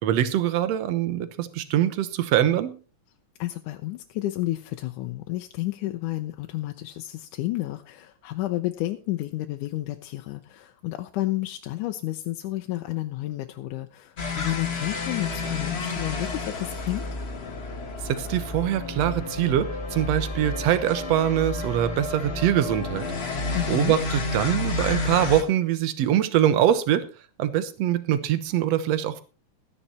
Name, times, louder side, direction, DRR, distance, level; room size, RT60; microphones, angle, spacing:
voice 1, 0.0-2.8 18.0-23.1 23.7-27.0 27.4-29.2, right 11 dB, 65° right, 13 dB, 2.0 m, -23 dB
voice 2, 3.4-17.0 23.5-24.0, left 16 dB, 85° left, 6 dB, 2.2 m, -31 dB
sound 1, 14.2-25.4, left 3 dB, 50° left, 0.7 m, -31 dB
14.5 x 9.9 x 4.2 m, 0.34 s
omnidirectional pair, 3.5 m